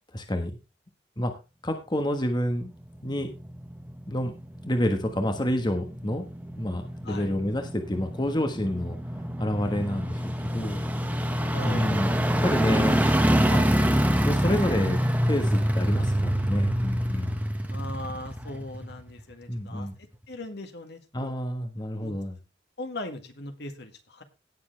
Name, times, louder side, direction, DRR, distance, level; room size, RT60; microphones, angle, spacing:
voice 1, 0.1-0.6 1.2-1.3 1.6-2.7 3.0-3.3 4.1-4.3 4.6-6.2 6.6-9.0 9.4-12.1 12.4-13.0 13.5-13.6 14.2-15.0 15.2-17.4 19.5-19.9 21.1-22.4, left 1 dB, 25° left, 6 dB, 1.4 m, -29 dB
sound 1, 2.7-19.2 19.6-19.7, equal, 10° right, 1.3 m, -27 dB
voice 2, 11.5-12.0 17.7-21.3 22.0-22.1 22.8-24.2, left 2 dB, 60° left, 6 dB, 1.9 m, -39 dB
17.5 x 7.1 x 3.4 m, 0.28 s
head